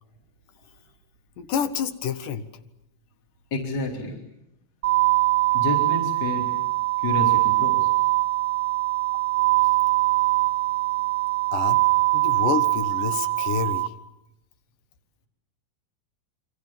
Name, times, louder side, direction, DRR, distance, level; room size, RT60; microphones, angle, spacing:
voice 1, 1.4-2.5 11.5-11.8 12.1-13.9, left 7 dB, 70° left, 11 dB, 2.9 m, -28 dB
voice 2, 3.5-4.2 5.5-6.4 7.0-7.9, left 2 dB, 25° left, 1 dB, 4.3 m, -29 dB
sound 1, 4.8-13.9, right 19 dB, 40° right, 1.1 m, -22 dB
28.0 x 24.5 x 7.4 m, 0.85 s
omnidirectional pair, 3.9 m